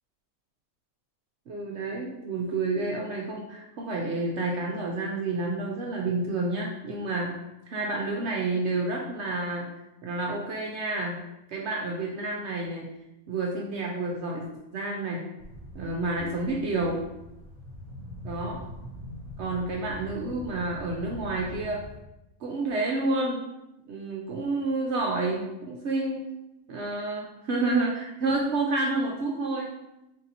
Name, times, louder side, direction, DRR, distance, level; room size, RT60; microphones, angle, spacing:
voice 1, 1.5-7.3 7.7-9.7 10.0-11.2 11.5-12.9 13.3-14.5 14.7-15.2 15.7-17.0 18.2-18.6 19.4-21.8 22.4-23.4 23.9-26.3 26.7-29.7, right 2 dB, 65° right, -2 dB, 0.7 m, -29 dB
sound 1, 15.4-22.0, left 1 dB, 40° left, 0.6 m, -42 dB
3.6 x 2.7 x 4.0 m, 0.93 s
omnidirectional pair, 1.6 m